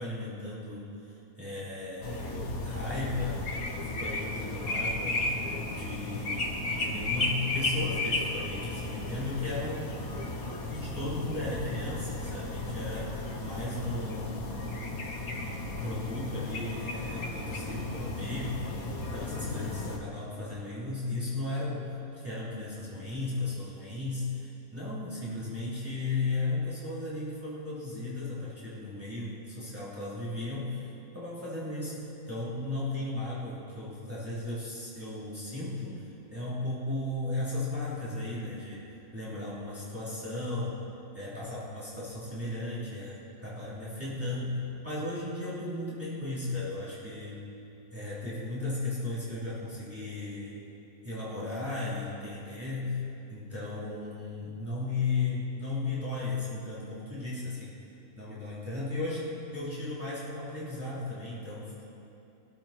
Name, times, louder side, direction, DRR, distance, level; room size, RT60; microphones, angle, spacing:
voice 1, 0.0-2.4 2.6-5.2 5.6-10.0 10.7-14.5 15.4-18.7 19.1-30.9 31.1-32.0 32.3-38.9 39.1-40.8 41.1-47.4 47.9-50.6 51.0-53.0 53.3-57.7 58.2-61.7, left 2 dB, 10° right, -9 dB, 3.6 m, -35 dB
sound 1, 2.0-20.0, left 2 dB, 90° left, 1.8 m, -34 dB
23.0 x 13.0 x 4.5 m, 2.8 s
omnidirectional pair, 1.5 m